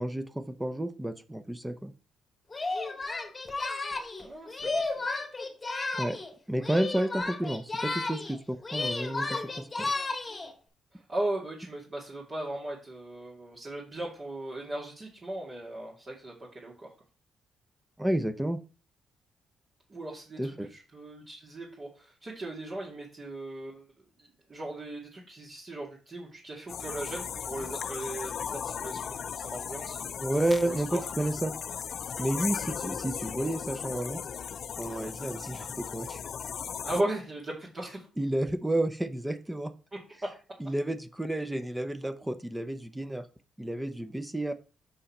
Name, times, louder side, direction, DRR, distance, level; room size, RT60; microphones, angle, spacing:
voice 1, 0.0-1.9 6.0-6.2 6.5-9.9 18.0-18.6 20.4-20.7 30.2-31.5 32.2-34.2 34.8-36.2 38.2-39.7 40.6-43.3 43.6-44.5, right 1 dB, 10° right, 11 dB, 0.7 m, -31 dB
Singing, 2.5-6.3 6.6-8.4 8.6-10.5, left 3 dB, 25° left, 1.4 m, -33 dB
voice 2, 4.2-5.1 10.9-16.9 19.9-23.8 24.2-30.0 30.6-31.0 36.8-38.1, right 1 dB, 35° right, -4 dB, 2.2 m, -37 dB
sound 1, 26.7-37.0, left 7 dB, 55° left, 0.4 m, -37 dB
6.6 x 5.5 x 4.3 m, 0.35 s
cardioid pair, 90°, 0 cm